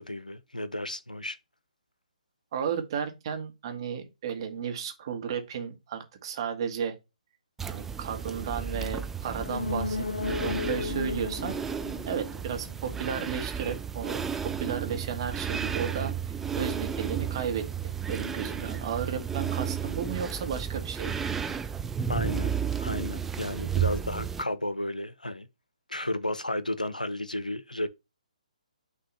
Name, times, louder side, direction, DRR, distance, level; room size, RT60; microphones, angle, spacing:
voice 1, 0.0-1.4 22.1-25.5 25.9-27.9, left 1 dB, 90° left, 0.7 m, -33 dB
voice 2, 2.5-6.9 7.7-11.6 12.1-14.2 14.6-17.6 18.1-21.3, right 7 dB, 40° right, 1.4 m, -34 dB
sound 1, 7.6-24.4, right 7 dB, 5° right, 0.3 m, -33 dB
sound 2, 9.3-13.0 13.3-13.4, left 3 dB, 75° left, 0.3 m, -34 dB
6.0 x 3.0 x 5.4 m
figure-of-eight pair, 135°, 4 cm